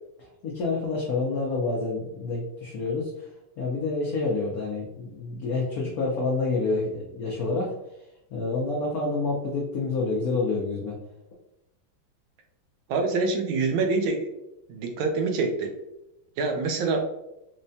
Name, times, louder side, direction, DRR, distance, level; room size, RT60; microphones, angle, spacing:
voice 1, 0.2-3.3 3.6-7.7 8.3-11.0, left 3 dB, 80° left, -2 dB, 0.8 m, -28 dB
voice 2, 12.9-14.3 14.7-15.7 16.4-17.0, right 4 dB, 75° right, 4 dB, 1.3 m, -25 dB
4.6 x 2.1 x 2.6 m, 0.88 s
omnidirectional pair, 2.3 m